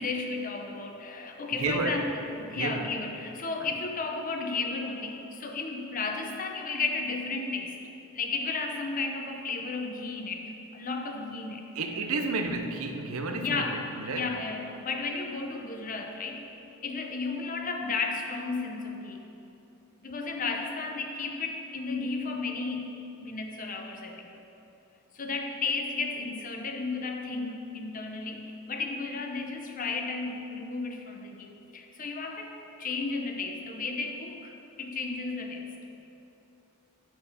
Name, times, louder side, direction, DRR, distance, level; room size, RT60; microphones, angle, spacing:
voice 1, 0.0-7.8 8.1-11.7 13.4-13.8 14.1-16.4 16.8-19.2 20.0-22.9 23.2-24.3 25.1-35.7, left 4 dB, 35° left, 3 dB, 0.6 m, -33 dB
voice 2, 1.6-2.1 2.5-2.9 11.7-14.4, right 3 dB, 75° right, 5 dB, 0.6 m, -31 dB
8.1 x 4.4 x 5.6 m, 2.9 s
head